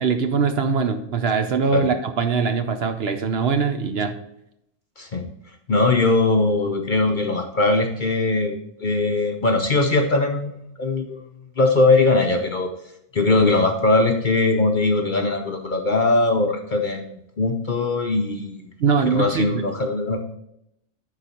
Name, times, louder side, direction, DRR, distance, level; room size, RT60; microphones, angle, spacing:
voice 1, 0.0-4.2 18.8-19.6, right 5 dB, 60° right, 7 dB, 0.8 m, -22 dB
voice 2, 5.0-5.3 5.7-8.6 8.8-11.2 11.6-12.7 13.1-18.7 19.1-20.2, left 2 dB, 50° left, 4 dB, 0.7 m, -20 dB
11.0 x 4.1 x 4.2 m, 0.78 s
omnidirectional pair, 1.3 m